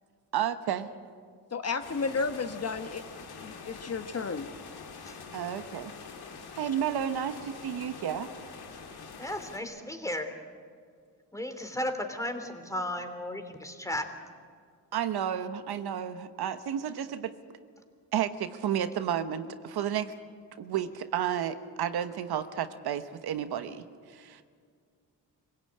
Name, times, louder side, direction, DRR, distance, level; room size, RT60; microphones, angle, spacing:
voice 1, 0.3-0.9 5.3-5.9 6.6-8.3 14.9-17.3 18.1-20.1 20.6-23.8 24.1-24.4, right 9 dB, 80° right, 10 dB, 1.2 m, -31 dB
voice 2, 1.5-3.0 3.4-4.5 6.5-6.7, left 4 dB, 40° left, 9 dB, 1.1 m, -32 dB
sound 1, 1.8-9.6, left 5 dB, 75° left, 2.8 m, -45 dB
voice 3, 9.2-10.3 11.3-14.1, left 1 dB, 10° left, 7 dB, 2.9 m, -34 dB
25.0 x 17.0 x 8.8 m, 2.1 s
cardioid pair, 80°, 38 cm